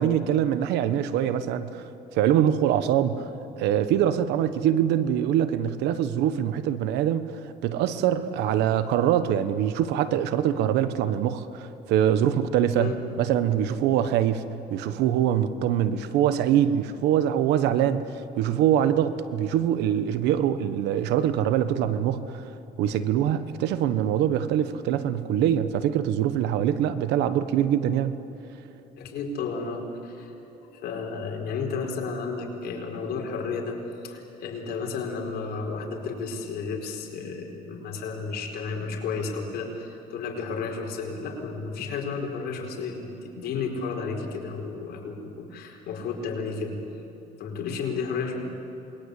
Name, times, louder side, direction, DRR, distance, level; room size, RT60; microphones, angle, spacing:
voice 1, 0.0-1.8 2.1-3.3 3.6-7.3 7.6-12.9 13.2-14.4 14.7-18.0 18.4-22.4 22.8-28.2, right 10 dB, 85° right, 12 dB, 1.2 m, -24 dB
voice 2, 29.0-30.3 30.7-46.8 47.4-48.4, left 4 dB, 70° left, 1 dB, 4.6 m, -32 dB
27.5 x 21.5 x 8.5 m, 3.0 s
cardioid pair, 110°, 17 cm